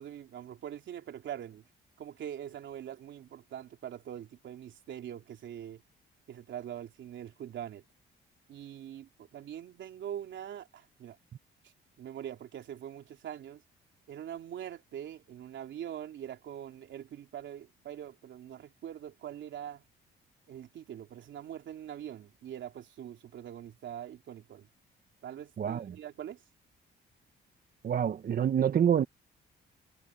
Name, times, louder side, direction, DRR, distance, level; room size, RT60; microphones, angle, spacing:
voice 1, 0.0-1.6 2.0-5.8 6.3-7.8 8.5-11.2 11.6-13.6 14.1-19.8 20.5-24.7 25.2-26.4, right 10 dB, 70° right, 3.4 m, -43 dB
voice 2, 27.8-29.0, right 9 dB, 50° right, 0.8 m, -26 dB
cardioid pair, 90°, 20 cm